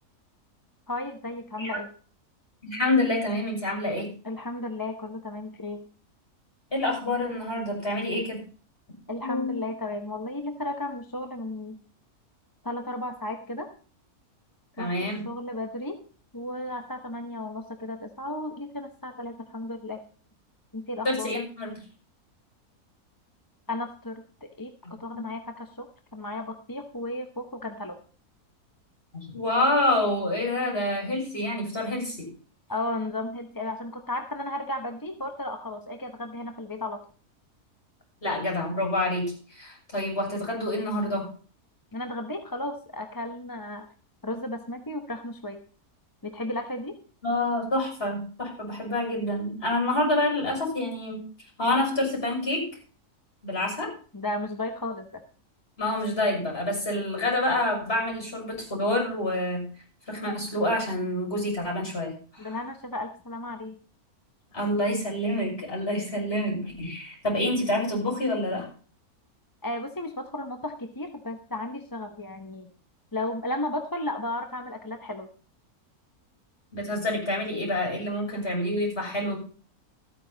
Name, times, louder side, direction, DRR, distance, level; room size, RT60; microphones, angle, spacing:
voice 1, 0.9-1.9 4.2-5.8 9.1-11.8 12.6-13.7 14.8-16.0 16.3-20.0 20.7-21.3 23.7-28.0 32.7-37.0 41.9-43.9 44.2-45.6 46.2-47.0 54.1-55.2 62.4-63.8 69.6-72.7 73.1-75.3, left 1 dB, 15° left, 5 dB, 0.9 m, -34 dB
voice 2, 2.6-4.1 6.7-8.4 9.2-9.6 14.8-15.2 21.0-21.7 25.1-25.2 29.1-32.3 38.2-41.3 47.2-51.2 51.6-52.7 53.4-53.9 55.8-59.7 60.1-62.5 64.5-68.7 76.7-79.4, left 1 dB, 40° left, -1 dB, 6.6 m, -27 dB
14.5 x 9.3 x 4.0 m, 0.39 s
omnidirectional pair, 1.6 m